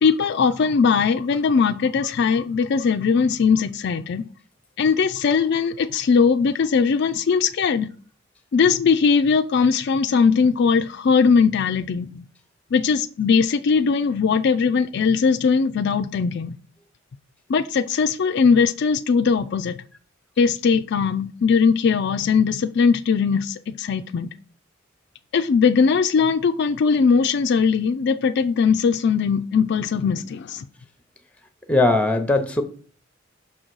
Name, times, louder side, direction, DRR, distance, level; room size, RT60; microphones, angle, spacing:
voice 1, 0.0-4.2 4.8-7.9 8.5-12.2 12.7-16.5 17.5-19.8 20.4-24.3 25.3-30.6, left 5 dB, 55° left, 0.4 m, -20 dB
voice 2, 31.7-32.6, left 2 dB, 5° left, 0.8 m, -19 dB
6.0 x 3.8 x 6.2 m
head